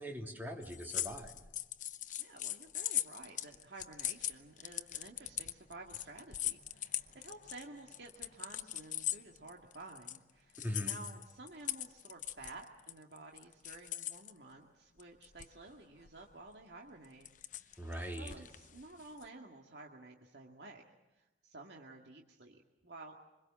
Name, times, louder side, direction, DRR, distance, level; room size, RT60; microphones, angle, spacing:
voice 1, 0.0-1.3 10.6-11.0 17.8-18.3, equal, 10° right, 2 dB, 3.1 m, -41 dB
sound 1, 0.6-10.2 10.5-14.3 15.0-15.7 16.0-16.2 17.0-19.2, left 12 dB, 45° left, 0.8 m, -40 dB
voice 2, 2.2-17.3 17.5-20.8 21.1-23.1, right 2 dB, 70° right, 1 dB, 2.1 m, -53 dB
26.5 x 22.0 x 7.5 m, 1.1 s
head